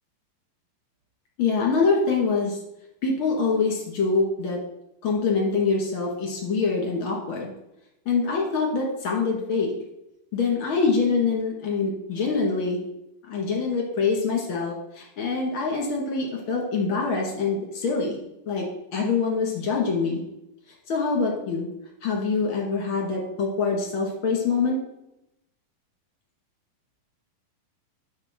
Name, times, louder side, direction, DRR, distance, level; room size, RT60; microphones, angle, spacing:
voice 1, 1.4-2.6 3.0-4.6 5.0-7.5 8.1-9.7 10.3-12.8 13.2-18.2 18.5-20.2 20.9-21.7 22.0-24.8, left 4 dB, 40° left, -1 dB, 2.3 m, -25 dB
9.6 x 7.1 x 4.5 m, 0.86 s
omnidirectional pair, 4.3 m